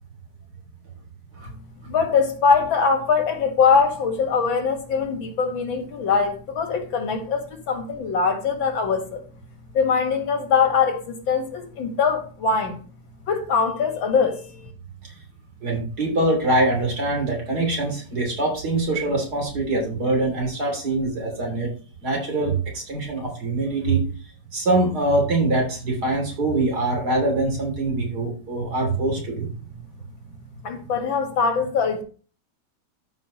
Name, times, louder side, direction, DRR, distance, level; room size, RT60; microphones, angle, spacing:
voice 1, 1.9-9.2 9.7-12.8 13.3-14.6 30.6-32.0, left 5 dB, 90° left, 2.4 m, -22 dB
voice 2, 15.6-21.7 22.0-24.1 24.5-29.5, right 2 dB, 55° right, 3.5 m, -23 dB
13.0 x 5.4 x 3.0 m
omnidirectional pair, 2.1 m